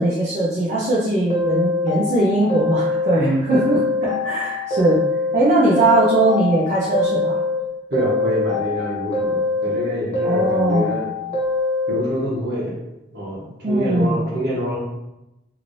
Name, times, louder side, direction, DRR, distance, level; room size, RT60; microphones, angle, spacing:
voice 1, 0.0-5.0 5.3-7.4 10.2-10.9 13.6-14.2, right 1 dB, 40° right, -7 dB, 0.5 m, -20 dB
sound 1, 1.3-3.2 3.5-5.4 5.7-7.6 7.9-9.8 10.1-12.0, left 3 dB, 35° left, 0.7 m, -23 dB
voice 2, 7.9-11.0 11.9-12.8 13.1-14.8, equal, 60° right, -6 dB, 1.1 m, -25 dB
3.0 x 2.8 x 2.6 m, 0.93 s
head